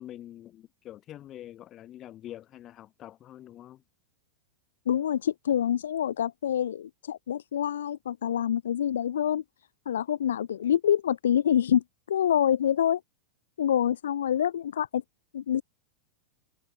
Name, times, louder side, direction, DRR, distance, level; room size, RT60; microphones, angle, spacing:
voice 1, 0.0-3.8, left 12 dB, 30° left, 6.0 m, -45 dB
voice 2, 4.9-9.4 9.9-13.0 13.6-15.0 15.3-15.6, left 10 dB, 65° left, 0.6 m, -26 dB
figure-of-eight pair, 90°, 0 cm